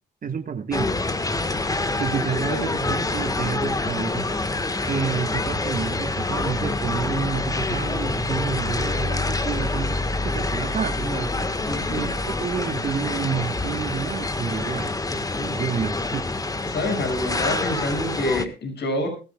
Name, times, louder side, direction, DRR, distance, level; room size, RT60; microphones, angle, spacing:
voice 1, 0.2-1.0 2.0-4.2 4.9-11.3 11.9-14.9 15.4-16.2, right 6 dB, 45° right, 5 dB, 1.5 m, -29 dB
sound 1, 0.7-18.5, left 2 dB, 20° left, 1.4 m, -26 dB
voice 2, 2.3-2.7 11.7-12.1 16.7-19.1, left 1 dB, 60° left, 5 dB, 6.1 m, -27 dB
20.5 x 15.0 x 2.3 m, 0.33 s
cardioid pair, 90°, 20 cm